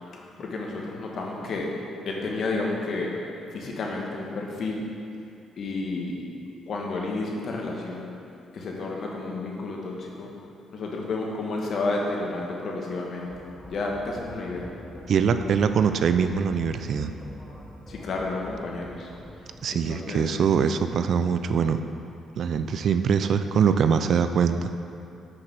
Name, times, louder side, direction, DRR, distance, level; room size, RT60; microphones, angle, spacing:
voice 1, 0.4-1.7 2.0-3.2 3.5-4.8 5.6-6.2 6.7-8.1 8.5-10.3 10.7-14.7 17.9-19.1 19.7-20.3, left 3 dB, 60° left, -1 dB, 1.2 m, -31 dB
sound 1, 13.3-20.5, equal, 5° left, 1.2 m, -45 dB
voice 2, 15.1-17.1 19.6-21.8 22.4-24.8, right 6 dB, 60° right, 9 dB, 0.3 m, -23 dB
6.0 x 5.0 x 5.9 m, 2.7 s
cardioid pair, 90°, 0 cm